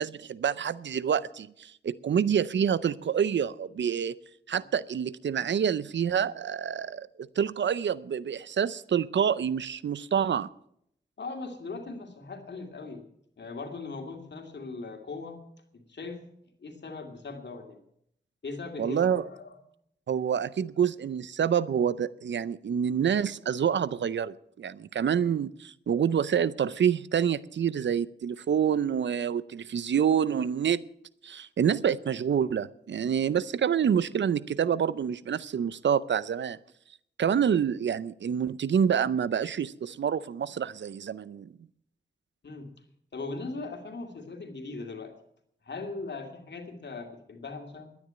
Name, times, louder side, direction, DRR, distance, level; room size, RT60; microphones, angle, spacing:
voice 1, 0.0-4.2 4.5-10.5 18.8-19.2 20.1-30.8 31.2-36.6 37.2-41.5, right 8 dB, 85° right, 0.6 m, -27 dB
voice 2, 11.2-13.0 13.4-15.4 15.7-16.2 16.6-17.8 18.4-19.6 42.4-42.7 43.1-45.1 45.6-48.0, left 3 dB, 70° left, 2.6 m, -39 dB
12.0 x 9.6 x 8.8 m
cardioid pair, 50°, 18 cm